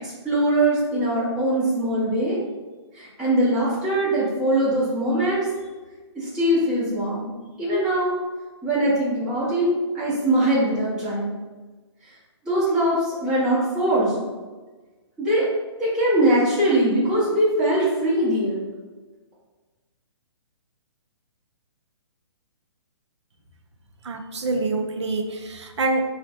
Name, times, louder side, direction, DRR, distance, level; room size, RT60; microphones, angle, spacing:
voice 1, 0.0-2.4 2.9-5.5 6.1-7.3 7.6-8.2 8.6-11.3 12.4-14.3 15.2-15.4 15.8-18.6, right 1 dB, 5° right, -12 dB, 1.5 m, -22 dB
voice 2, 24.0-26.0, right 3 dB, 75° right, 4 dB, 0.8 m, -26 dB
4.2 x 2.5 x 4.3 m, 1.3 s
hypercardioid pair, 150°, 15 cm